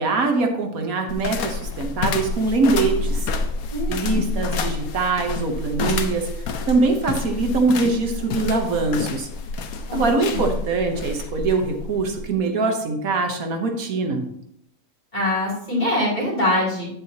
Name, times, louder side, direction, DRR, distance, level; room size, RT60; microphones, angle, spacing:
voice 1, 0.0-3.3 3.9-6.2 6.7-9.3 9.9-14.2, right 3 dB, 75° right, 4 dB, 1.4 m, -23 dB
sound 1, 1.1-12.3, left 4 dB, 90° left, 1.2 m, -28 dB
voice 2, 3.7-4.3 9.9-10.4 15.1-16.9, left 1 dB, 30° left, -4 dB, 3.1 m, -24 dB
8.9 x 7.5 x 2.8 m, 0.74 s
omnidirectional pair, 1.5 m